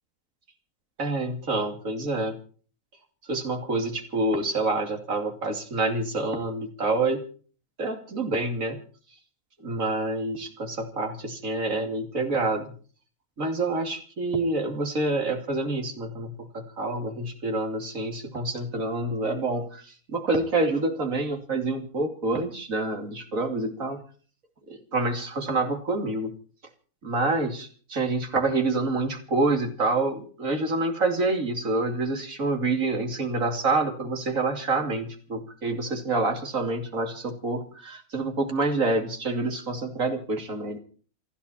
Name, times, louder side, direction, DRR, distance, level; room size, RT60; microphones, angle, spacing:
voice 1, 1.0-2.4 3.3-7.2 7.8-8.8 9.6-12.7 13.4-24.0 24.7-26.3 27.0-40.8, right 2 dB, 60° right, 3 dB, 3.2 m, -27 dB
29.0 x 10.5 x 4.4 m, 0.43 s
omnidirectional pair, 1.6 m